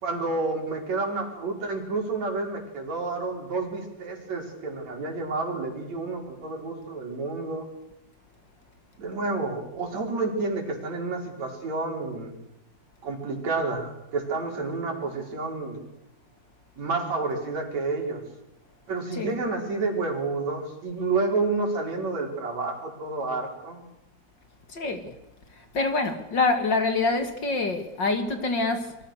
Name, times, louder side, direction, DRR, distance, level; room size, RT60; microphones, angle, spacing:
voice 1, 0.0-7.7 9.0-12.4 13.0-15.8 16.8-18.2 18.9-23.8, right 3 dB, 65° right, 6.4 m, -30 dB
voice 2, 24.7-25.1 25.5-29.0, left 3 dB, 40° left, 3.2 m, -26 dB
27.0 x 24.5 x 6.7 m
omnidirectional pair, 3.3 m